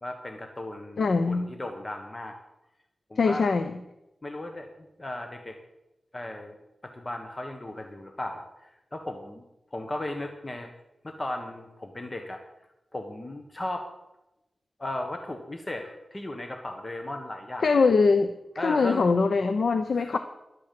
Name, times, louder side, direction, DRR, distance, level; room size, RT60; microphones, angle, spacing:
voice 1, 0.0-2.4 3.1-3.5 4.2-4.7 5.0-5.6 6.1-6.6 6.8-9.4 9.7-10.7 11.0-12.4 12.9-13.9 14.8-17.7 18.6-19.1 19.9-20.2, left 1 dB, 30° left, 4 dB, 1.4 m, -36 dB
voice 2, 1.0-1.5 3.2-3.8 17.6-18.3 18.6-20.2, left 4 dB, 80° left, 9 dB, 0.7 m, -22 dB
12.0 x 8.7 x 7.7 m, 0.92 s
wide cardioid pair, 85°, 0 cm